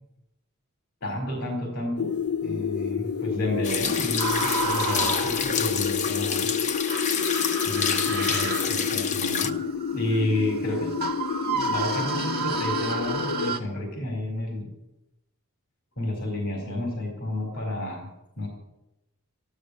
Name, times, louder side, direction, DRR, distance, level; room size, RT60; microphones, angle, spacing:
voice 1, 1.0-2.1 2.4-6.5 7.7-9.6 9.9-11.1 11.4-14.7 16.0-18.1 18.4-18.5, left 1 dB, 50° left, 1 dB, 4.3 m, -31 dB
sound 1, 2.0-13.5, left 7 dB, 90° left, 0.6 m, -30 dB
sound 2, 3.6-9.5, left 7 dB, 35° left, 0.9 m, -28 dB
sound 3, 4.2-5.9 6.9-13.6, right 3 dB, 45° right, 1.9 m, -31 dB
14.0 x 12.5 x 8.1 m, 0.90 s
head